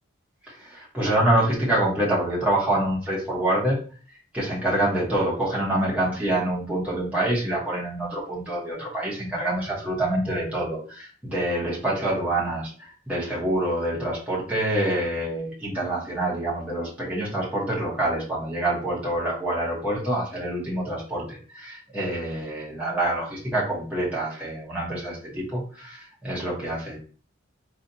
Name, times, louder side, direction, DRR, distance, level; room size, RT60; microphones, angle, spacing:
voice 1, 0.5-3.8 4.3-27.0, right 1 dB, 5° right, -7 dB, 1.0 m, -26 dB
3.9 x 2.4 x 2.7 m, 0.39 s
head